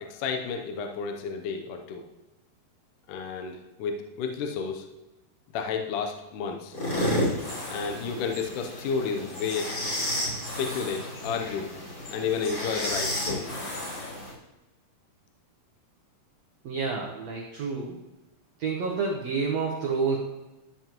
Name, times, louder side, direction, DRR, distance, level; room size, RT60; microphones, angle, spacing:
voice 1, 0.0-2.0 3.1-4.9 5.5-6.8 7.7-9.8 10.6-11.8 12.1-13.6, left 5 dB, 75° left, 4 dB, 2.0 m, -31 dB
sound 1, 6.7-14.3, left 1 dB, 40° left, 3.0 m, -32 dB
voice 2, 16.6-18.0 18.6-20.2, right 4 dB, 75° right, 0 dB, 1.5 m, -29 dB
13.0 x 7.2 x 3.0 m, 1.0 s
omnidirectional pair, 4.4 m